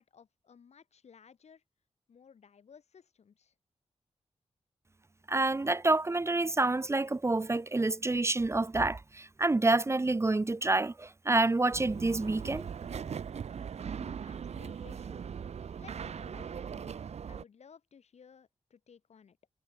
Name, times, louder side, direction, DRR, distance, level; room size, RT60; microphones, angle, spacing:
voice 1, 0.0-1.6 2.1-3.5 13.9-15.2 15.8-19.4, left 6 dB, 80° left, 5.5 m, -57 dB
voice 2, 5.3-12.7, right 2 dB, 25° right, 0.9 m, -28 dB
sound 1, 11.7-17.4, right 7 dB, 75° right, 1.1 m, -40 dB
wide cardioid pair, 90°, 11 cm